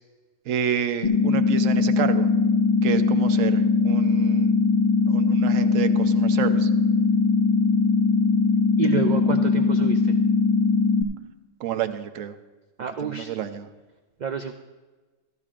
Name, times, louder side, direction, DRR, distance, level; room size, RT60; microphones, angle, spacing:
voice 1, 0.5-2.3 2.8-4.6 5.1-6.7 11.6-12.3 13.0-13.7, right 9 dB, 85° right, 9 dB, 1.1 m, -29 dB
sound 1, 1.0-11.0, left 4 dB, 35° left, 0.6 m, -20 dB
voice 2, 8.8-10.1 12.8-13.3 14.2-14.5, right 6 dB, 55° right, 6 dB, 0.5 m, -29 dB
14.5 x 13.5 x 2.5 m, 1.2 s
omnidirectional pair, 1.3 m